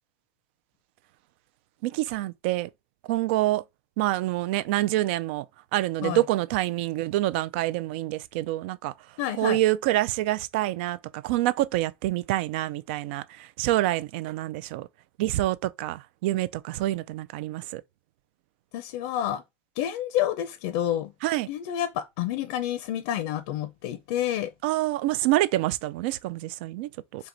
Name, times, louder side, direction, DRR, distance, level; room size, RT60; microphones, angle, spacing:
voice 1, 1.8-2.7 3.1-3.6 4.0-5.5 5.7-8.9 9.3-14.9 15.2-17.8 21.2-21.5 24.6-27.2, right 16 dB, 70° right, 0.4 m, -27 dB
voice 2, 9.2-9.6 18.7-19.4 19.8-21.1 21.5-24.5 27.2-27.3, left 11 dB, 65° left, 0.5 m, -29 dB
4.6 x 2.9 x 3.8 m
cardioid pair, 160°, 6 cm